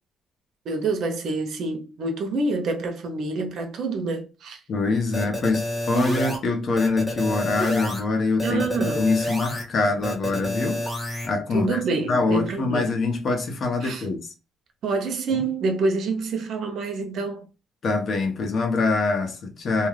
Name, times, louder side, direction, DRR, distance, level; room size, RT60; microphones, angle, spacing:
voice 1, 0.7-4.6 8.4-9.0 11.5-12.9 13.8-14.0 14.8-17.5, right 3 dB, 70° right, 0.7 m, -27 dB
voice 2, 4.7-10.9 11.2-11.8 12.1-14.3 17.8-19.9, left 3 dB, 55° left, 0.8 m, -24 dB
sound 1, 5.1-6.4 6.8-8.0 8.4-9.6 10.0-11.3, equal, 5° left, 1.1 m, -28 dB
2.4 x 2.2 x 3.1 m
cardioid pair, 90°, 0 cm